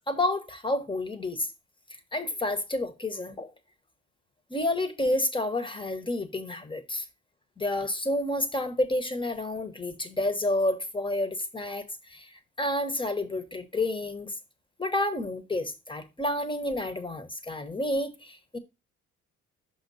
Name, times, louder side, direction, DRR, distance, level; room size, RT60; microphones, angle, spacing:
voice 1, 0.1-1.5 2.1-3.5 4.5-7.0 7.6-11.8 12.1-12.3 12.6-14.3 14.8-18.6, left 1 dB, 15° left, 1.2 m, -29 dB
5.7 x 5.6 x 4.1 m
cardioid pair, 90°, 30 cm